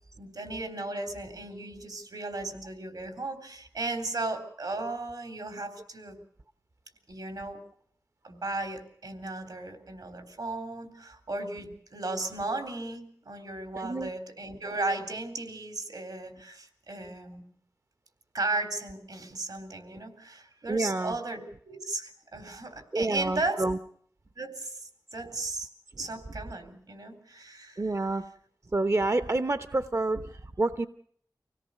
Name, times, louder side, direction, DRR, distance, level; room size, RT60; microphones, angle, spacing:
voice 1, 0.2-6.2 7.1-7.6 8.2-17.4 18.3-23.6 24.4-25.7 26.0-27.8, right 2 dB, 75° right, 6 dB, 3.7 m, -35 dB
voice 2, 13.8-14.1 20.7-21.2 22.9-23.8 27.8-28.2 28.7-30.9, right 2 dB, 45° right, 10 dB, 0.8 m, -28 dB
25.5 x 17.5 x 6.5 m, 0.63 s
wide cardioid pair, 80°, 7 cm